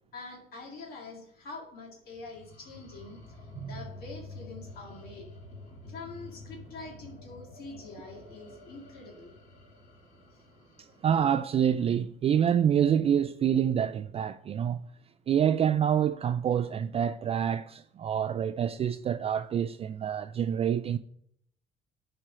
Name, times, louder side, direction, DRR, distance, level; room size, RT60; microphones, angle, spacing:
voice 1, 0.1-3.2 3.6-5.3 5.9-9.4, left 3 dB, 65° left, 2.1 m, -45 dB
sound 1, 2.1-11.9, left 2 dB, 45° left, 1.9 m, -49 dB
voice 2, 11.0-14.8 15.3-21.0, right 9 dB, 35° right, 0.3 m, -27 dB
10.5 x 4.4 x 4.9 m
cardioid pair, 110°, 17 cm